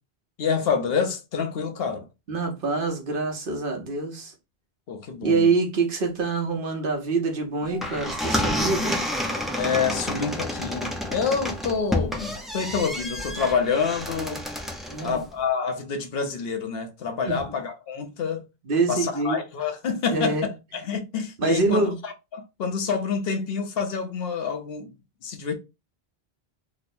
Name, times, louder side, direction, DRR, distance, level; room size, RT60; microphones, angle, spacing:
voice 1, 0.4-2.0 4.9-5.5 9.5-14.4 15.0-18.4 18.9-24.9 25.2-25.5, left 6 dB, 70° left, 0.8 m, -27 dB
voice 2, 2.3-4.3 5.2-9.0 14.9-15.2 17.2-17.5 18.6-19.4 20.1-20.5 21.4-22.0, right 3 dB, 60° right, 1.0 m, -25 dB
sound 1, 7.6-15.2, left 1 dB, ahead, 0.4 m, -29 dB
3.0 x 2.0 x 4.1 m
omnidirectional pair, 1.1 m